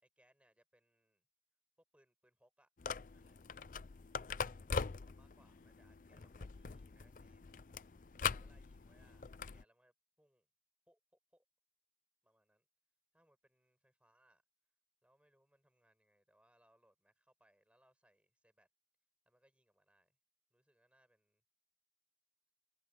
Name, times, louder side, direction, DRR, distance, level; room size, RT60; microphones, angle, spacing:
voice 1, 0.0-1.2 1.9-2.7 3.1-3.4 5.0-7.5 8.3-9.2 9.5-10.5 10.9-11.4 12.2-12.7 13.1-14.4 15.0-18.7 19.3-20.2 20.5-21.4, right 1 dB, 5° right, 6.1 m, -74 dB
sound 1, 2.8-9.6, left 5 dB, 50° left, 0.5 m, -43 dB
head